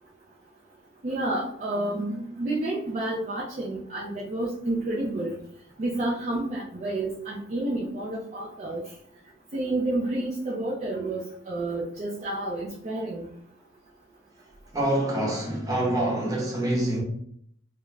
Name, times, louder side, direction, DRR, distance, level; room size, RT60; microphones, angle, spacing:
voice 1, 1.0-2.1 2.4-5.4 5.8-8.8 9.5-13.3, right 2 dB, 35° right, 0.4 m, -30 dB
voice 2, 1.8-2.3 14.7-17.0, right 1 dB, 20° right, 0.8 m, -26 dB
2.4 x 2.1 x 3.1 m
head